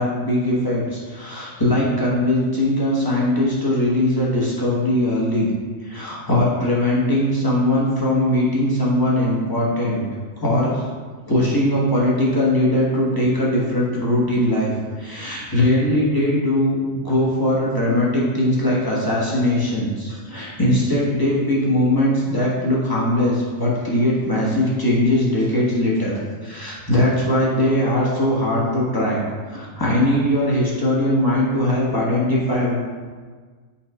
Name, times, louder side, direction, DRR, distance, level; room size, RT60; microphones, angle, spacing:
voice 1, 0.0-5.5 5.8-10.0 10.4-10.8 11.3-14.7 15.0-29.2 29.5-32.8, left 1 dB, 15° left, -6 dB, 1.2 m, -20 dB
5.6 x 3.8 x 4.8 m, 1.5 s
omnidirectional pair, 1.4 m